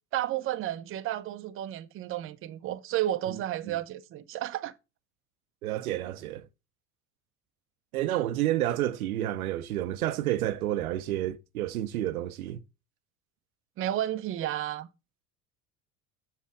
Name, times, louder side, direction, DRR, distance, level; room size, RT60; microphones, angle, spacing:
voice 1, 0.1-4.7 13.8-14.9, right 13 dB, 30° right, 0.6 m, -32 dB
voice 2, 5.6-6.5 7.9-12.6, right 13 dB, 70° right, 0.6 m, -30 dB
7.2 x 6.3 x 3.5 m
figure-of-eight pair, 70°, 45 cm